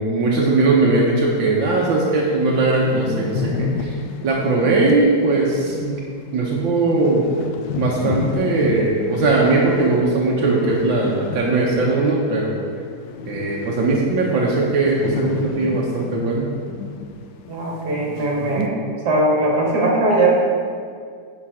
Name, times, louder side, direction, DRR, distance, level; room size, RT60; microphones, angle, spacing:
voice 1, 0.0-3.9 4.2-6.0 6.3-7.2 7.8-12.6 13.3-16.5 18.6-18.7, right 3 dB, 85° right, -3 dB, 1.7 m, -19 dB
sound 1, 1.5-1.6 1.9-2.0 2.2-12.4 12.7-17.2 17.5-17.6 18.2-18.6, left 5 dB, 85° left, 1.4 m, -30 dB
voice 2, 17.5-18.8 19.1-20.3, right 2 dB, 60° right, -3 dB, 2.3 m, -19 dB
10.0 x 5.1 x 4.8 m, 2.1 s
omnidirectional pair, 2.0 m